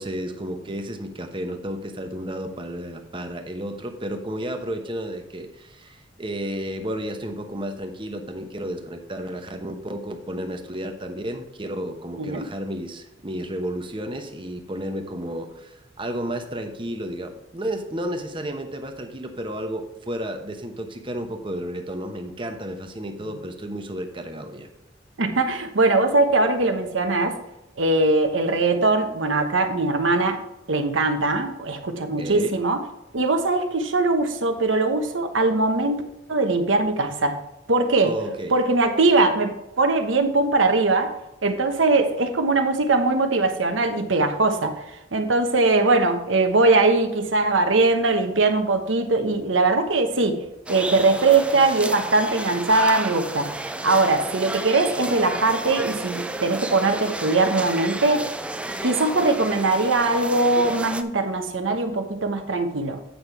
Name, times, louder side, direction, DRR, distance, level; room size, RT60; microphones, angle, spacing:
voice 1, 0.0-24.7 32.2-32.6 38.0-38.5, right 1 dB, 25° right, 5 dB, 1.0 m, -32 dB
voice 2, 25.2-27.4 27.8-30.4 30.7-32.8 33.1-36.0 36.3-37.4 37.7-38.2 38.5-41.1 41.4-53.5 53.8-58.3 58.8-63.0, right 3 dB, 80° right, 6 dB, 1.1 m, -21 dB
sound 1, 50.7-61.0, right 2 dB, 5° right, 0.4 m, -32 dB
8.7 x 5.7 x 4.7 m, 0.90 s
head